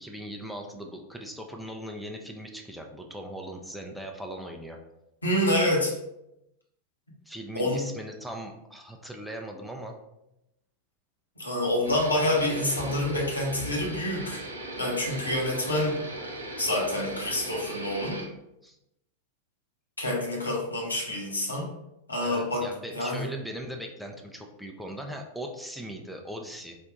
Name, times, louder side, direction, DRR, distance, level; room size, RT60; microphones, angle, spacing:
voice 1, 0.0-4.8 7.3-10.0 18.6-18.8 22.2-26.8, equal, ahead, 1 dB, 0.4 m, -39 dB
voice 2, 5.2-5.9 7.5-7.8 11.4-14.4 14.8-16.0 16.6-18.2 20.0-21.7 22.1-22.7 22.9-23.3, left 1 dB, 80° left, -3 dB, 1.0 m, -27 dB
sound 1, 11.8-18.3, right 1 dB, 75° right, 0.6 m, -38 dB
3.5 x 2.2 x 3.8 m, 0.86 s
figure-of-eight pair, 90°, 0 cm